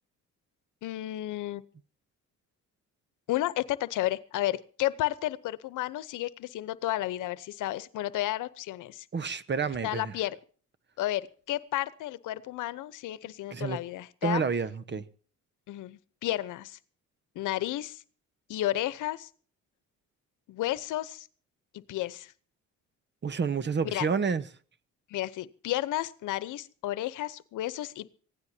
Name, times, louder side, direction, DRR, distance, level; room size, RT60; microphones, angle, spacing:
voice 1, 0.8-1.6 3.3-9.0 9.8-10.4 11.0-14.4 14.9-15.0 15.7-16.8 17.3-18.0 18.5-19.3 20.5-21.3 21.7-22.3 23.9-24.1 25.1-28.1, left 15 dB, 85° left, 0.9 m, -32 dB
voice 2, 9.1-10.1 13.5-13.8 14.2-15.0 23.2-24.4, right 5 dB, 35° right, 1.1 m, -29 dB
24.5 x 16.5 x 2.8 m
cardioid pair, 90°, 30 cm